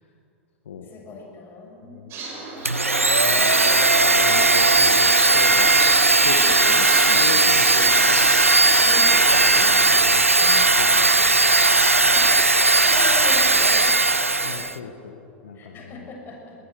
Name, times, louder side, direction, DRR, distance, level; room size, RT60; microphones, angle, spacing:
voice 1, 0.8-2.1 8.8-9.9 12.0-14.8 15.5-16.5, left 3 dB, 30° left, 0 dB, 7.1 m, -38 dB
voice 2, 1.8-2.1 3.3-3.6 4.1-5.7 6.2-8.2 9.4-11.8 14.4-16.1, left 5 dB, 70° left, 4 dB, 1.6 m, -37 dB
sound 1, 2.1-10.1, right 3 dB, 35° right, 5.8 m, -32 dB
Domestic sounds home sounds, 2.7-14.8, right 2 dB, 85° right, 0.7 m, -17 dB
21.0 x 19.5 x 6.8 m, 2.7 s
figure-of-eight pair, 90°, 7 cm